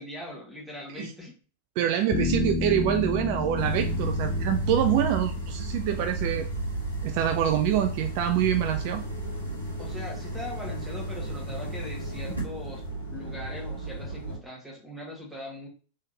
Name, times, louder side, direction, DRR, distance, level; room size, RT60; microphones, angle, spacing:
voice 1, 0.0-1.4 9.8-12.8 13.1-15.7, left 1 dB, 5° right, -2 dB, 1.4 m, -40 dB
voice 2, 1.8-6.5 7.0-9.0, right 11 dB, 45° right, 7 dB, 0.3 m, -26 dB
sound 1, 2.1-12.9, left 3 dB, 25° left, 1.0 m, -35 dB
sound 2, 3.5-14.4, right 1 dB, 85° left, 1.2 m, -33 dB
3.6 x 3.4 x 2.7 m, 0.39 s
figure-of-eight pair, 90°, 0 cm